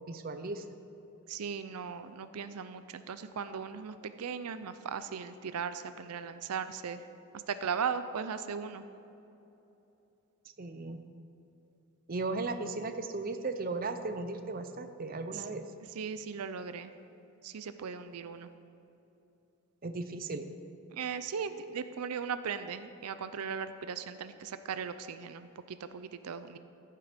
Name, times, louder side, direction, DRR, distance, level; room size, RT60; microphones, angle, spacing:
voice 1, 0.1-0.6 10.6-11.0 12.1-15.7 19.8-20.6, right 3 dB, 40° right, 8 dB, 0.6 m, -36 dB
voice 2, 1.3-7.0 7.5-8.8 15.3-15.4 16.0-16.9 17.4-18.5 20.9-26.6, right 6 dB, 90° right, 11 dB, 0.5 m, -38 dB
14.5 x 7.6 x 5.1 m, 2.9 s
head